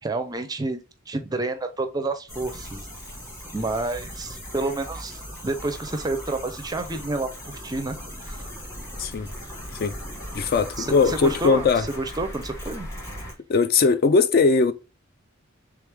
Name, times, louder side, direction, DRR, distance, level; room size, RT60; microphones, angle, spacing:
voice 1, 0.0-2.9 3.5-8.0 8.2-8.5 10.8-12.9, right 2 dB, 20° right, 0.4 m, -29 dB
sound 1, 2.3-13.3, equal, 15° left, 1.1 m, -38 dB
voice 2, 10.3-11.9 13.5-14.7, left 4 dB, 45° left, 0.3 m, -20 dB
3.4 x 3.2 x 3.3 m
head